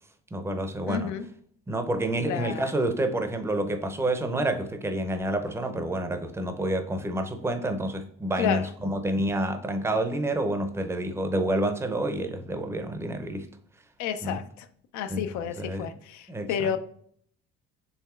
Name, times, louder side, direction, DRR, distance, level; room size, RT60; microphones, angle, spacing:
voice 1, 0.3-1.1 1.7-13.5 14.2-14.4 15.1-15.9 16.3-16.8, right 1 dB, 10° right, 6 dB, 0.5 m, -29 dB
voice 2, 0.9-1.2 2.3-2.6 8.4-8.6 14.0-14.4 14.9-16.8, left 8 dB, 75° left, 10 dB, 0.5 m, -30 dB
4.8 x 3.1 x 2.4 m, 0.63 s
cardioid pair, 95°, 29 cm